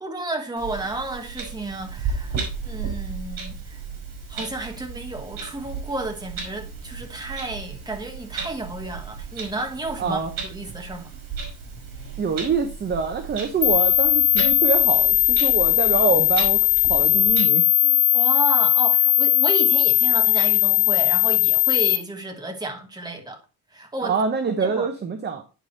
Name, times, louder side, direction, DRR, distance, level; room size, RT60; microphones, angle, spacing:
voice 1, 0.0-2.4 2.6-3.8 4.3-11.1 18.1-23.4 23.7-24.2 24.6-24.9, right 2 dB, 10° right, 1.2 m, -32 dB
Clock, 0.6-17.4, right 5 dB, 55° right, 3.5 m, -35 dB
voice 2, 10.0-10.3 12.2-18.0 24.0-25.4, right 5 dB, 25° right, 0.7 m, -25 dB
sound 1, 13.6-22.0, left 12 dB, 90° left, 0.9 m, -18 dB
9.2 x 4.9 x 3.9 m
cardioid pair, 170°, 39 cm